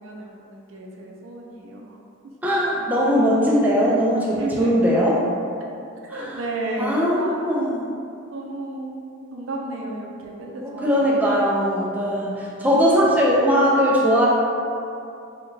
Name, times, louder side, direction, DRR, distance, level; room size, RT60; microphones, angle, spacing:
voice 1, 0.0-2.0 4.3-4.8 6.0-7.4 8.3-9.0 9.3-11.1 12.1-12.7, right 2 dB, 70° right, -1 dB, 0.5 m, -33 dB
voice 2, 2.4-5.1 6.1-6.4 6.8-7.9 10.6-14.3, equal, 10° right, -5 dB, 0.3 m, -20 dB
2.6 x 2.2 x 3.7 m, 2.5 s
head